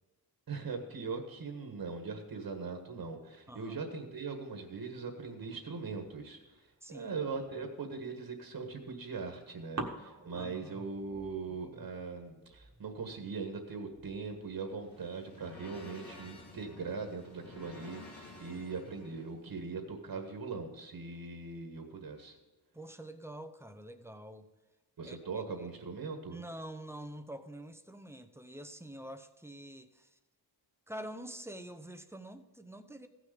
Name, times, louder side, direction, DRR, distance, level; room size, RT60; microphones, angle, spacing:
voice 1, 0.5-22.4 25.0-26.4, right 4 dB, 65° right, 4 dB, 1.6 m, -40 dB
sound 1, 5.8-8.0 8.5-9.4 9.8-15.2, right 3 dB, 40° right, 1.4 m, -48 dB
voice 2, 6.8-7.1 10.3-10.7 22.7-24.5 25.0-25.7 26.3-30.2 30.9-33.1, right 1 dB, 5° right, 8 dB, 0.7 m, -46 dB
sound 2, 14.4-19.3, left 2 dB, 75° left, 2.9 m, -52 dB
16.0 x 6.4 x 5.1 m, 1.2 s
wide cardioid pair, 165°, 40 cm